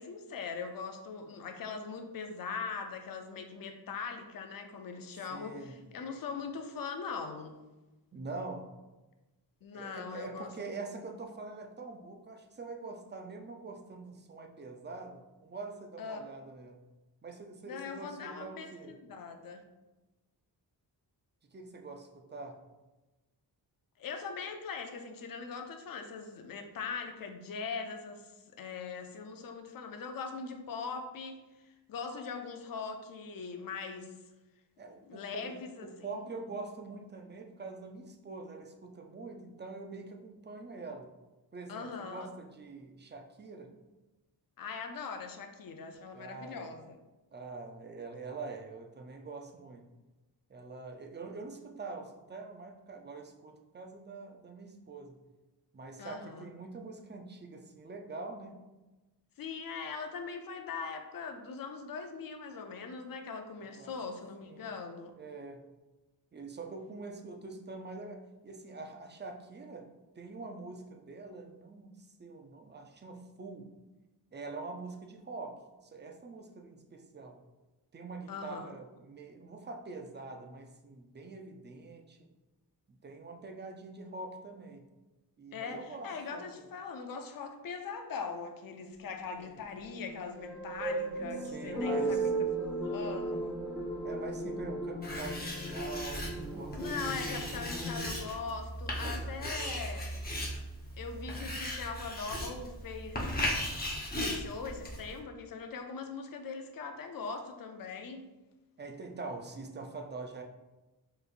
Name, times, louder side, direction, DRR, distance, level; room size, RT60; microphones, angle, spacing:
voice 1, 0.0-7.6 9.6-10.5 16.0-16.2 17.7-19.6 24.0-28.3 28.6-31.4 31.6-34.1 35.0-36.3 41.7-42.3 44.6-47.0 56.0-56.5 59.4-65.1 78.3-78.7 85.5-93.6 96.8-100.1 101.0-103.3 104.2-108.3, left 5 dB, 55° left, 5 dB, 0.6 m, -41 dB
voice 2, 5.3-5.8 8.1-8.6 9.7-16.8 17.2-19.0 21.5-22.6 34.8-35.5 35.8-41.1 41.5-43.7 46.1-46.7 47.3-49.9 50.5-55.2 55.7-58.6 63.7-63.9 64.4-64.7 65.1-65.6 66.3-69.9 70.2-73.7 74.3-77.4 77.9-82.3 83.0-84.9 85.4-86.6 89.4-89.6 91.4-92.6 94.0-96.9 97.4-97.5 99.0-99.8 108.8-110.4, right 3 dB, 25° right, 3 dB, 0.5 m, -44 dB
sound 1, 90.1-98.0, right 2 dB, ahead, 1.5 m, -35 dB
Writing, 95.0-105.2, left 1 dB, 20° left, 0.9 m, -37 dB
4.8 x 3.2 x 2.5 m, 1.1 s
wide cardioid pair, 95°, 42 cm